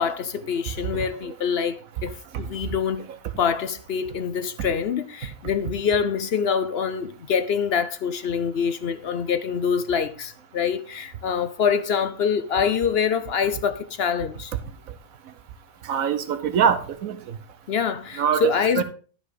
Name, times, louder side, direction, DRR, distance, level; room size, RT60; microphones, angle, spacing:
voice 1, 0.0-3.1 3.4-14.5 17.7-18.8, left 7 dB, 55° left, 0.8 m, -25 dB
voice 2, 15.9-17.1 18.2-18.8, right 7 dB, 90° right, 1.3 m, -23 dB
12.0 x 5.3 x 4.9 m
omnidirectional pair, 1.4 m